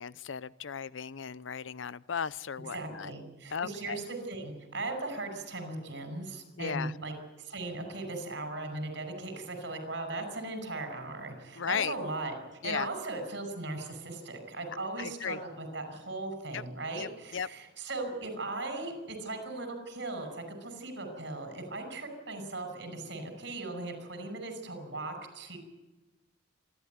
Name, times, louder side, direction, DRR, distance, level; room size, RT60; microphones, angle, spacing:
voice 1, 0.0-3.1 3.5-4.0 6.6-6.9 11.6-11.9 12.6-12.9 15.0-15.4 16.5-16.6 16.9-17.5, left 7 dB, 75° left, 19 dB, 0.6 m, -36 dB
voice 2, 2.7-25.6, right 2 dB, 65° right, 7 dB, 5.8 m, -38 dB
27.5 x 12.5 x 9.4 m, 1.1 s
head